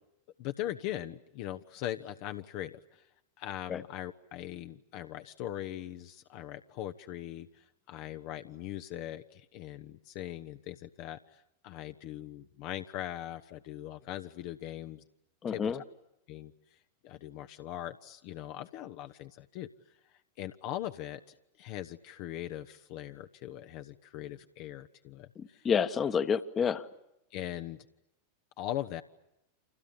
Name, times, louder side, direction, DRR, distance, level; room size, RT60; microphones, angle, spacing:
voice 1, 0.4-3.0 3.4-15.0 15.5-15.8 16.3-16.5 17.0-19.7 20.4-25.7 27.3-27.8 28.6-29.0, left 13 dB, 45° left, 8 dB, 1.1 m, -40 dB
voice 2, 15.4-15.8 25.4-26.9, left 7 dB, 25° left, 12 dB, 1.4 m, -29 dB
29.5 x 27.5 x 7.3 m, 0.85 s
figure-of-eight pair, 90°, 0 cm